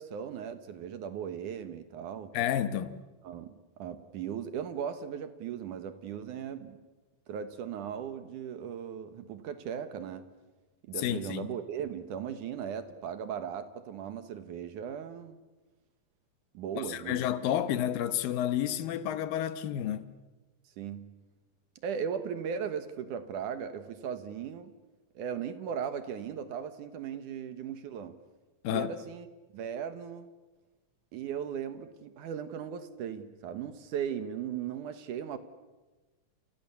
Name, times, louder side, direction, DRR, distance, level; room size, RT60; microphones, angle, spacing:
voice 1, 0.0-2.4 3.2-6.8 7.3-10.3 10.8-15.4 16.5-17.3 20.8-21.1 21.8-24.7 25.2-28.2 28.7-29.3 29.5-30.3 31.1-35.4, right 8 dB, 70° right, 2.6 m, -37 dB
voice 2, 2.3-3.0 11.0-11.5 16.8-20.0 28.6-28.9, left 11 dB, 90° left, 2.9 m, -30 dB
29.5 x 29.0 x 7.0 m
omnidirectional pair, 3.9 m